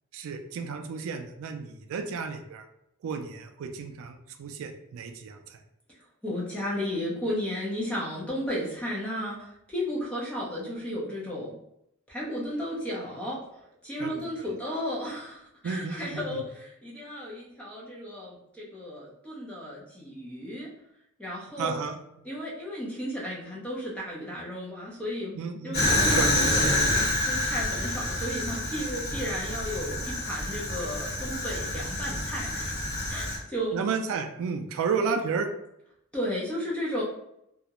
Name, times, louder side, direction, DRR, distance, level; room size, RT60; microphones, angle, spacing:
voice 1, 0.1-2.6 3.0-5.6 14.0-14.4 15.6-16.4 21.6-22.0 25.4-25.8 26.1-26.3 33.7-35.5, right 5 dB, 65° right, 6 dB, 0.3 m, -32 dB
voice 2, 6.2-11.5 12.1-20.7 21.2-21.8 22.2-25.3 25.6-33.8 36.1-37.0, equal, 5° left, -5 dB, 0.6 m, -34 dB
Fire, 25.7-33.4, left 1 dB, 45° left, 1.2 m, -28 dB
2.3 x 2.0 x 2.8 m, 0.79 s
head